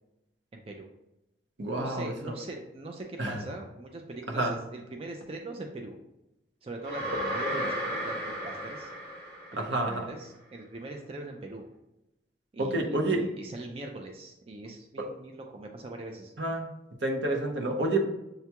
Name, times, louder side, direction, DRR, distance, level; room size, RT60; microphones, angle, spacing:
voice 1, 0.5-0.9 1.7-6.0 6.6-8.9 9.5-11.7 12.5-16.3, right 2 dB, 30° right, 2 dB, 0.3 m, -42 dB
voice 2, 1.6-2.4 3.2-3.4 4.3-4.5 7.3-7.7 9.6-10.1 12.6-13.2 16.4-16.7 17.0-18.1, right 2 dB, 80° right, 2 dB, 0.7 m, -29 dB
sound 1, 6.8-9.9, equal, 55° right, 1.5 m, -34 dB
6.6 x 2.3 x 2.8 m, 0.91 s
head